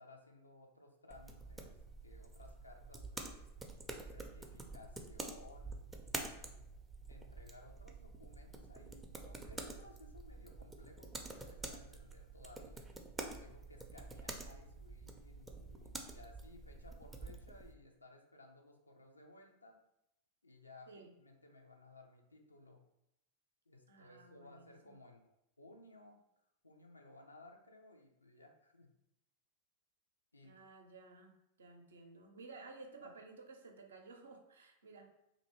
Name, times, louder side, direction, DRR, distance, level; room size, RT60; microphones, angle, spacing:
voice 1, 0.0-1.8 2.0-3.5 4.1-6.7 7.1-12.8 13.4-19.8 20.4-20.9 21.2-22.8 23.7-26.2 26.6-28.9 30.3-30.5 33.0-33.1, left 2 dB, 80° left, 3 dB, 0.4 m, -59 dB
sound 1, 1.1-17.7, right 2 dB, 10° right, 0.4 m, -48 dB
voice 2, 23.9-25.0 30.4-35.2, right 3 dB, 70° right, 3 dB, 0.5 m, -55 dB
2.6 x 2.5 x 3.0 m, 0.83 s
figure-of-eight pair, 90°, 0 cm